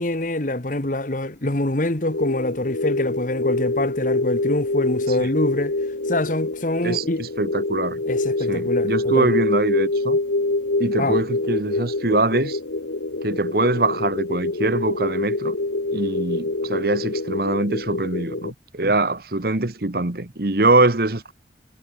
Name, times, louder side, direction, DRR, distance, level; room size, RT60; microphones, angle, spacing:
voice 1, 0.0-5.8 6.1-7.3 8.1-9.4 11.0-11.2, left 1 dB, 45° left, 1.6 m, -25 dB
sound 1, 2.1-18.5, left 2 dB, 85° left, 1.5 m, -25 dB
voice 2, 6.8-8.0 8.5-10.2 10.8-12.6 13.2-15.5 15.9-21.3, right 2 dB, 55° right, 1.5 m, -23 dB
head